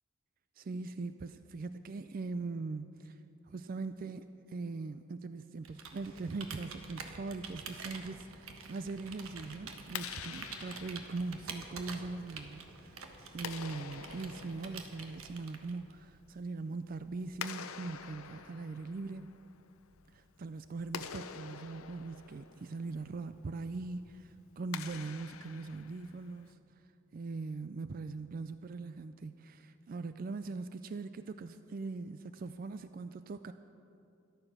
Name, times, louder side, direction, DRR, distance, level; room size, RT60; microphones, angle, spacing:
voice 1, 0.6-3.2 3.5-19.3 20.1-26.6 27.1-33.5, right 3 dB, 40° right, 11 dB, 0.3 m, -41 dB
Computer keyboard, 5.6-15.9, right 4 dB, 85° right, 1.3 m, -47 dB
Clapping, 9.8-26.5, left 8 dB, 85° left, 0.6 m, -48 dB
13.5 x 12.0 x 6.5 m, 2.6 s
head